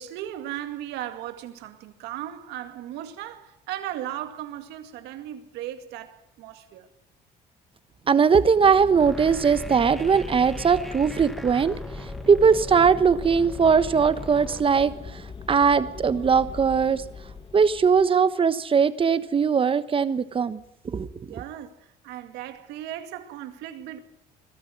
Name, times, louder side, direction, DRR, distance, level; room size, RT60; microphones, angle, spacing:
voice 1, 0.0-6.9 16.2-16.3 21.3-24.0, right 12 dB, 90° right, 2.2 m, -37 dB
voice 2, 8.1-11.7 12.3-15.2 15.5-17.0 17.5-21.4, right 6 dB, 30° right, 1.2 m, -20 dB
sound 1, 8.5-18.2, left 4 dB, 30° left, 1.9 m, -41 dB
sound 2, 9.0-14.6, equal, ahead, 1.0 m, -39 dB
21.5 x 13.0 x 9.4 m
cardioid pair, 110°, 17 cm